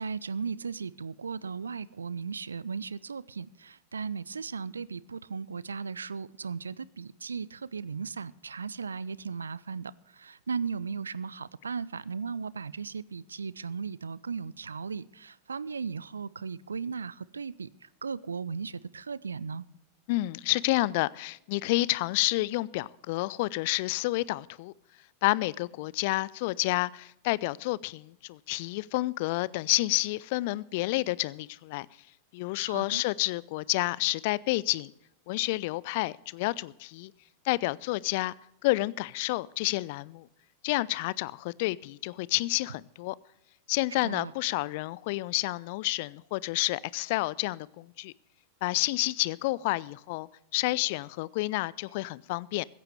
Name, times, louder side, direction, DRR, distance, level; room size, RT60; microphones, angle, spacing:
voice 1, 0.0-17.7 18.0-19.6 32.6-33.0 44.0-44.3, right 5 dB, 75° right, 22 dB, 0.4 m, -36 dB
voice 2, 20.1-24.7 25.2-31.9 32.3-34.9 35.3-37.1 37.4-38.3 38.6-40.3 40.6-43.2 43.7-48.1 48.6-52.7, left 20 dB, 50° left, 23 dB, 0.4 m, -29 dB
16.0 x 14.5 x 3.3 m, 0.80 s
figure-of-eight pair, 90°, 0 cm